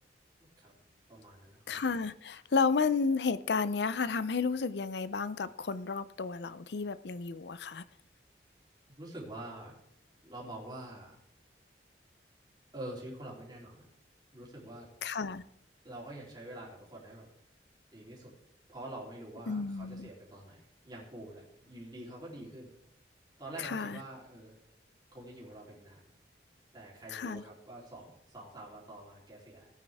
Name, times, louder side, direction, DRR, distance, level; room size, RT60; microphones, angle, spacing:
voice 1, 0.4-0.7 1.1-1.8 9.0-9.8 10.2-11.2 12.7-13.8 14.3-14.9 15.8-17.3 17.9-18.3 18.7-22.7 23.4-24.6 25.1-26.1 26.7-29.7, right 1 dB, 25° right, -4 dB, 3.6 m, -46 dB
voice 2, 1.7-7.8 15.0-15.4 19.5-20.1 23.6-24.0 27.1-27.4, left 5 dB, 70° left, 15 dB, 0.5 m, -32 dB
16.5 x 9.2 x 3.6 m, 0.81 s
head